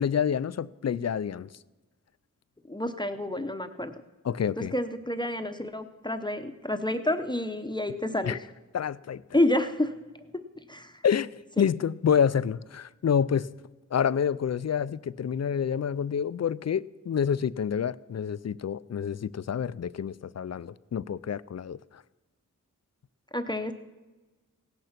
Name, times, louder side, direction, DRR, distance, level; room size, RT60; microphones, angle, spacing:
voice 1, 0.0-1.5 4.2-4.7 8.2-8.4 8.7-9.2 11.0-13.5 13.9-22.0, left 7 dB, 55° left, 0.4 m, -28 dB
voice 2, 2.7-3.9 4.6-8.4 9.3-9.9 10.3-11.0 11.6-11.7 23.3-23.7, left 1 dB, 15° left, 0.8 m, -29 dB
17.0 x 9.3 x 5.9 m
wide cardioid pair, 70°, 33 cm